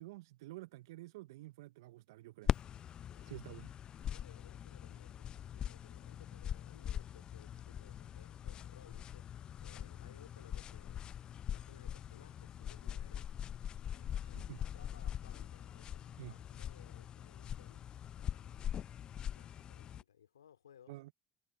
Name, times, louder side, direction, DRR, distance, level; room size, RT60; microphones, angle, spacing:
voice 1, 0.0-2.5 3.2-3.7 14.2-14.6 16.2-16.4 20.9-21.1, right 18 dB, 75° right, 0.7 m, -50 dB
sound 1, 2.5-20.0, left 9 dB, 45° left, 0.5 m, -42 dB
voice 2, 3.1-3.6 4.1-11.1 11.5-13.3 13.8-20.9, left 9 dB, 85° left, 2.7 m, -62 dB
hypercardioid pair, 65°, 2 cm